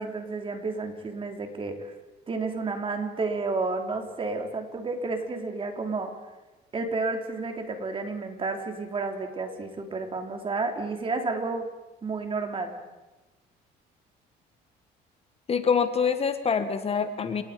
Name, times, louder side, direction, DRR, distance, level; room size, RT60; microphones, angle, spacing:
voice 1, 0.0-1.9 2.3-6.1 6.7-11.7 12.0-12.8, right 3 dB, 30° right, 4 dB, 3.5 m, -31 dB
voice 2, 15.5-17.4, left 6 dB, 35° left, 9 dB, 1.6 m, -25 dB
29.5 x 19.0 x 5.2 m, 1.1 s
cardioid pair, 110°, 17 cm